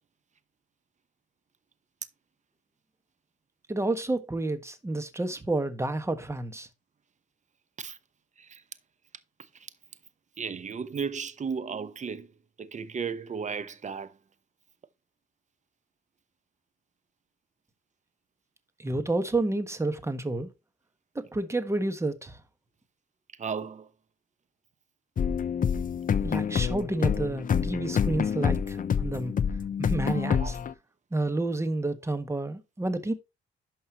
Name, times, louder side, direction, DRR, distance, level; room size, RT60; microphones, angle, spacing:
voice 1, 3.7-6.7 18.8-20.5 21.1-22.4 26.2-29.3 29.8-30.6 31.1-33.1, right 2 dB, 15° right, 1.5 m, -30 dB
voice 2, 10.4-12.3 12.6-14.1 23.4-23.9 30.2-30.5, right 6 dB, 35° right, 1.0 m, -34 dB
sound 1, 25.2-30.7, left 7 dB, 45° left, 0.8 m, -27 dB
11.0 x 5.5 x 3.0 m
cardioid pair, 90°, 20 cm